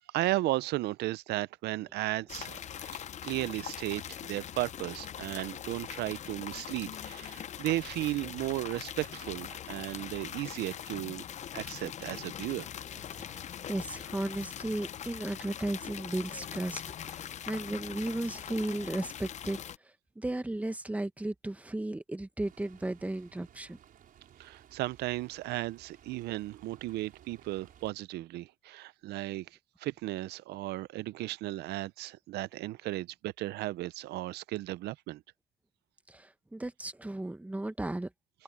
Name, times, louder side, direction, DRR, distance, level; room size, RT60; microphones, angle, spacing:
voice 1, 0.1-11.2 11.5-12.7 24.4-29.5 29.8-35.2, right 17 dB, 75° right, 0.6 m, -35 dB
sound 1, 2.3-19.8, left 9 dB, 45° left, 0.7 m, -42 dB
voice 2, 13.1-19.6 20.2-23.8 36.1-38.1, right 1 dB, 10° right, 1.2 m, -35 dB
sound 2, 22.4-27.9, right 10 dB, 55° right, 5.5 m, -58 dB
cardioid pair, 110°, 17 cm